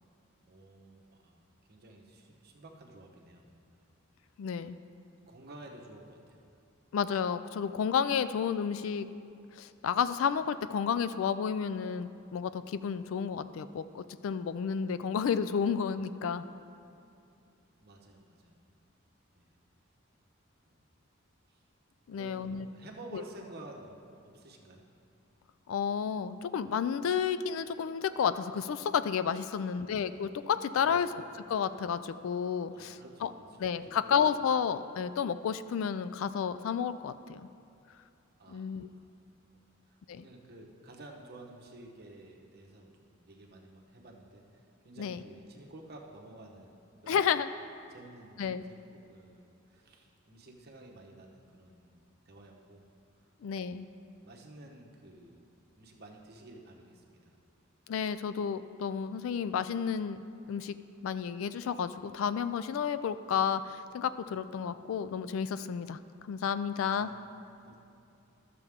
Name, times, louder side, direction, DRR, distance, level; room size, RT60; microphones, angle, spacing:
voice 1, 0.4-1.4 1.7-3.5 3.8-3.9 5.2-6.4 17.8-18.6 19.3-19.5 20.6-20.8 21.5-21.6 22.1-24.8 29.5-30.0 30.8-31.1 32.7-34.1 38.4-39.1 39.7-47.2 47.9-52.9 53.1-53.3 53.5-54.0 54.2-55.5 55.8-57.4 66.8-67.2 67.6-67.8, right 1 dB, 50° right, 0 dB, 1.0 m, -52 dB
voice 2, 4.4-4.8 6.9-9.1 9.5-16.5 22.1-22.7 23.1-23.2 25.7-31.1 31.5-33.3 33.6-37.4 38.5-38.9 40.1-40.2 45.0-45.2 47.1-47.5 48.4-48.6 53.4-53.9 57.9-60.8 61.0-66.0 66.3-67.1, left 7 dB, 70° left, 13 dB, 0.3 m, -31 dB
12.5 x 6.8 x 3.6 m, 2.7 s
head